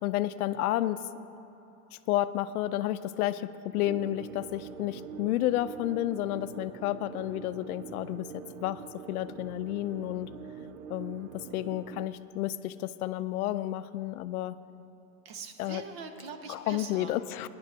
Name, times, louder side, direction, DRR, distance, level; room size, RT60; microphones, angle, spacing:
voice 1, 0.0-1.0 2.1-8.8 9.1-10.3 10.9-14.6 15.6-15.8 16.5-17.5, left 14 dB, 85° left, 14 dB, 0.5 m, -31 dB
sound 1, 3.8-12.1, right 8 dB, 70° right, 0.6 m, -45 dB
voice 2, 15.2-17.1, right 5 dB, 45° right, 7 dB, 0.8 m, -42 dB
19.0 x 10.5 x 2.7 m, 2.8 s
supercardioid pair, 160°, 42 cm